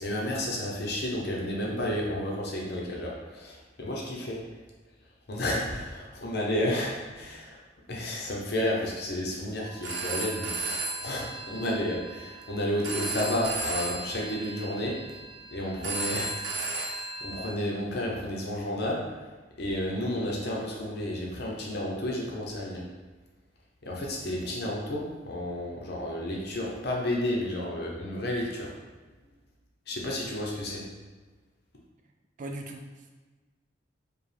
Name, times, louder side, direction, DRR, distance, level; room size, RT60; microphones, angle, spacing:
voice 1, 0.0-4.6 5.3-7.6 7.9-15.1 15.5-16.5 16.7-16.9 17.2-19.3 19.6-22.9 23.8-28.8 29.9-30.9, left 1 dB, 60° left, -2 dB, 0.8 m, -31 dB
Telephone, 9.6-17.5, right 3 dB, 90° right, 0.7 m, -35 dB
voice 2, 32.4-33.2, right 1 dB, 45° right, 3 dB, 0.4 m, -40 dB
5.0 x 2.3 x 3.3 m, 1.3 s
head